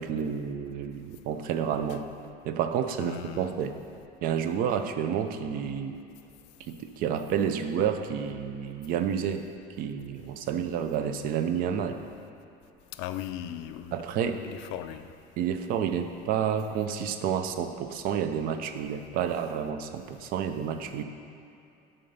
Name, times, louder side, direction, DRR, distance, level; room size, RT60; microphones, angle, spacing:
voice 1, 0.0-2.1 2.4-3.8 4.2-6.0 6.7-9.5 9.8-12.0 13.9-14.4 15.4-21.0, right 8 dB, 50° right, 8 dB, 0.4 m, -30 dB
voice 2, 3.0-3.6 13.0-14.0 14.2-15.0, left 11 dB, 75° left, 10 dB, 0.4 m, -37 dB
8.7 x 3.9 x 5.5 m, 2.8 s
cardioid pair, 170°, 19 cm